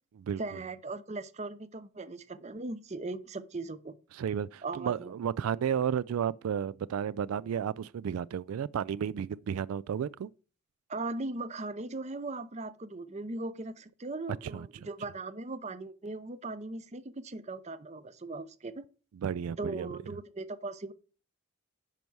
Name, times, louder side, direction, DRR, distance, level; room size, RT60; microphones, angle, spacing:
voice 1, 0.4-4.0 4.6-5.2 10.9-18.8 19.6-20.9, right 2 dB, 30° right, 0.6 m, -39 dB
voice 2, 4.1-10.3 14.4-14.7 19.2-19.9, right 8 dB, 85° right, 0.3 m, -32 dB
10.5 x 4.6 x 6.1 m
head